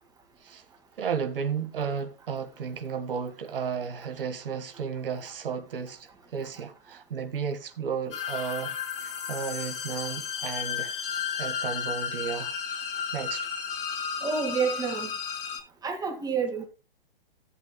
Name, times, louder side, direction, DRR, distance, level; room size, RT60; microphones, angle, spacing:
voice 1, 1.0-11.0 11.4-12.6 13.1-13.5, right 6 dB, 70° right, 1.7 m, -33 dB
sound 1, 8.1-15.6, left 7 dB, 65° left, 2.5 m, -33 dB
voice 2, 14.2-15.1 15.8-16.7, right 5 dB, 15° right, 2.2 m, -28 dB
17.0 x 8.3 x 2.3 m
hypercardioid pair, 120°, 29 cm